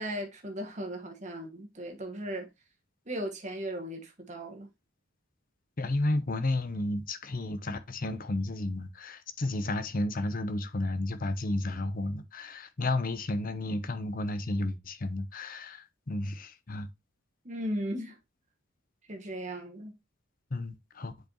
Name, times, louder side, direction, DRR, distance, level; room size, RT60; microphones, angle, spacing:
voice 1, 0.0-2.5 3.1-4.7 17.4-18.2 19.1-19.9, equal, 35° right, 1.4 m, -37 dB
voice 2, 5.8-16.9 20.5-21.1, left 2 dB, 40° left, 0.7 m, -32 dB
7.9 x 4.6 x 2.9 m
head